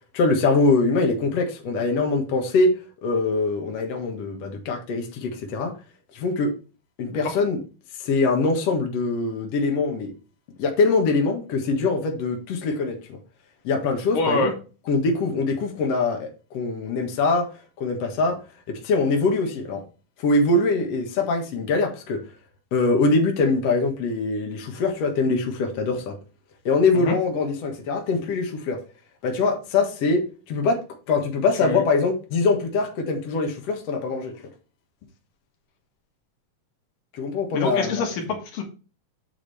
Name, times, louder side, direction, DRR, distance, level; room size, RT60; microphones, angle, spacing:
voice 1, 0.1-2.7 3.0-5.7 6.1-6.5 7.0-7.6 8.0-10.1 10.6-13.2 13.6-14.5 14.9-17.5 17.8-18.4 18.7-19.8 20.2-22.2 22.7-26.2 26.6-28.8 29.2-34.4 37.1-38.1, left 3 dB, 55° left, 2.4 m, -23 dB
voice 2, 14.1-14.5 26.9-27.1 31.6-31.8 37.5-38.6, left 3 dB, 80° left, 3.2 m, -26 dB
8.3 x 4.9 x 3.4 m
omnidirectional pair, 3.9 m